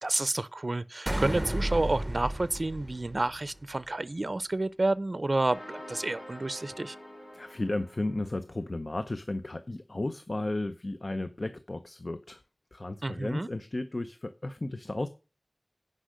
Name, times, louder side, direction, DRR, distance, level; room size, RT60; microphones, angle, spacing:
voice 1, 0.0-7.0 13.0-13.5, right 2 dB, 55° right, 0.5 m, -30 dB
sound 1, 1.1-3.6, right 1 dB, 20° right, 0.7 m, -32 dB
sound 2, 5.5-8.5, equal, 85° left, 4.4 m, -46 dB
voice 2, 7.3-12.4 12.7-15.1, left 2 dB, 55° left, 0.6 m, -34 dB
10.0 x 5.4 x 6.3 m
wide cardioid pair, 55°, 0 cm